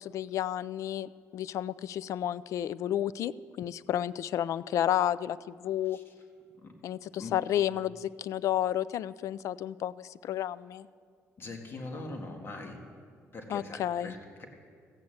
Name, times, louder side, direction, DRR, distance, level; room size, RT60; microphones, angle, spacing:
voice 1, 0.0-6.0 6.8-10.9 13.5-14.1, left 11 dB, 70° left, 19 dB, 0.3 m, -31 dB
voice 2, 11.4-12.8 13.3-14.4, left 2 dB, 45° left, 2 dB, 1.8 m, -42 dB
15.0 x 8.7 x 7.7 m, 2.1 s
cardioid pair, 95°, 6 cm